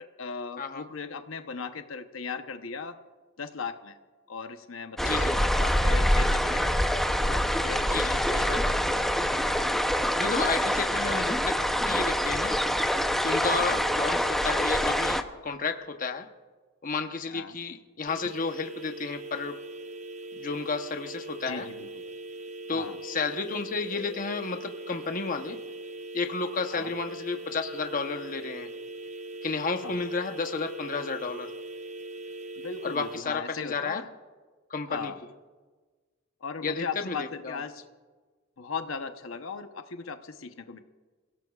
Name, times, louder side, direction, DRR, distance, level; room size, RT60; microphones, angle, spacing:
voice 1, 0.0-3.0 3.4-4.0 4.3-9.1 9.6-9.8 13.7-13.8 17.3-17.6 21.5-22.0 22.7-23.0 26.7-26.9 29.8-30.0 32.6-34.1 34.9-35.2 36.4-37.8 38.6-40.8, left 5 dB, 90° left, 7 dB, 0.9 m, -38 dB
sound 1, 5.0-15.2, equal, ahead, 0.7 m, -25 dB
voice 2, 10.2-11.5 11.8-12.6 13.2-16.3 16.8-19.6 20.3-21.7 22.7-25.6 26.1-28.7 29.4-31.5 32.8-34.0 34.7-35.1 36.6-37.6, left 4 dB, 45° left, 6 dB, 0.9 m, -32 dB
sound 2, 18.1-33.2, right 2 dB, 35° right, 0.7 m, -41 dB
27.5 x 17.0 x 2.4 m, 1.3 s
head